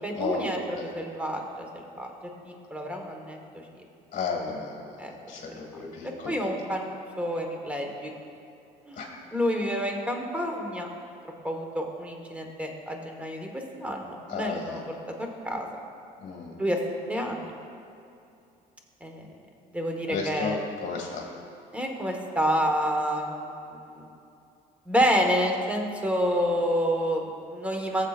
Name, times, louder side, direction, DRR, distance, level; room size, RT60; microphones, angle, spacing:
voice 1, 0.0-1.7 1.9-2.1 2.4-3.6 5.0-5.1 5.5-5.6 6.0-8.1 8.9-10.9 11.4-14.8 15.4-15.7 16.6-16.8 17.1-17.5 19.0-19.3 19.7-20.6 21.7-24.1 24.9-28.1, equal, 10° right, 2 dB, 1.3 m, -29 dB
voice 2, 4.1-6.5 9.0-9.1 14.3-14.8 16.2-16.6 20.1-21.2, left 5 dB, 50° left, -2 dB, 2.0 m, -33 dB
19.0 x 7.3 x 2.5 m, 2.6 s
cardioid pair, 110°, 17 cm